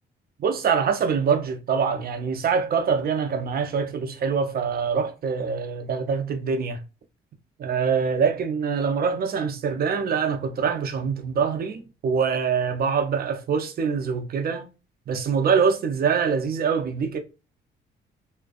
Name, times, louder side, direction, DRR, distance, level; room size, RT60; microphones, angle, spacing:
voice 1, 0.4-6.8 7.6-14.7 15.1-17.2, right 6 dB, 50° right, 0.5 m, -24 dB
2.4 x 2.2 x 2.3 m
cardioid pair, 90°, 20 cm